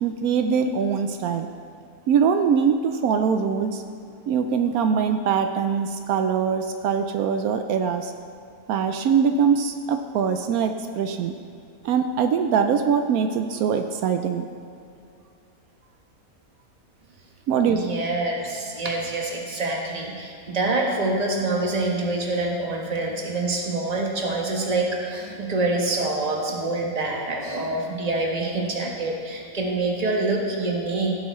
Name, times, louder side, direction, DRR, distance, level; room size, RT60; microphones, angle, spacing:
voice 1, 0.0-1.5 2.1-3.8 4.3-8.1 8.7-11.3 11.8-14.4 17.5-17.8, right 6 dB, 80° right, 7 dB, 1.0 m, -22 dB
voice 2, 17.7-31.2, right 2 dB, 30° right, 0 dB, 1.2 m, -26 dB
15.0 x 8.1 x 3.1 m, 2.5 s
omnidirectional pair, 1.5 m